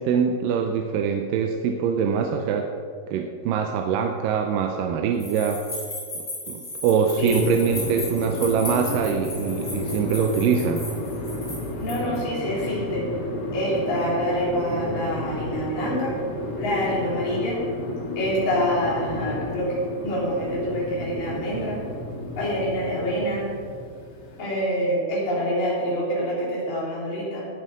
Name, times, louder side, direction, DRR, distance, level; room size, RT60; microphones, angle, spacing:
voice 1, 0.0-2.7 3.1-5.6 6.5-10.9, right 6 dB, 90° right, 4 dB, 2.3 m, -24 dB
sound 1, 5.2-12.2, left 1 dB, 20° left, 3.8 m, -36 dB
sound 2, 7.1-24.4, left 2 dB, 40° left, 1.8 m, -32 dB
voice 2, 11.8-13.1 13.5-16.2 16.6-17.7 18.2-21.8 22.4-23.5 24.4-27.5, equal, 80° left, -6 dB, 5.2 m, -26 dB
17.0 x 7.6 x 5.1 m, 2.2 s
omnidirectional pair, 3.9 m